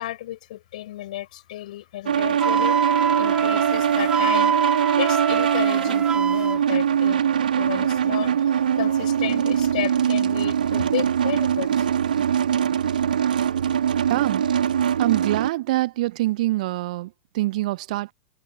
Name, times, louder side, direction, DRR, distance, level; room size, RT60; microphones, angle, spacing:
voice 1, 0.0-7.3 7.5-11.9, left 14 dB, 55° left, 6.8 m, -33 dB
sound 1, 2.1-15.5, right 8 dB, 70° right, 3.1 m, -22 dB
Wind instrument woodwind instrument, 2.4-6.6, right 5 dB, 15° right, 0.8 m, -25 dB
voice 2, 14.1-14.5 15.0-18.1, right 17 dB, 55° right, 1.0 m, -25 dB
figure-of-eight pair, 95°, 5 cm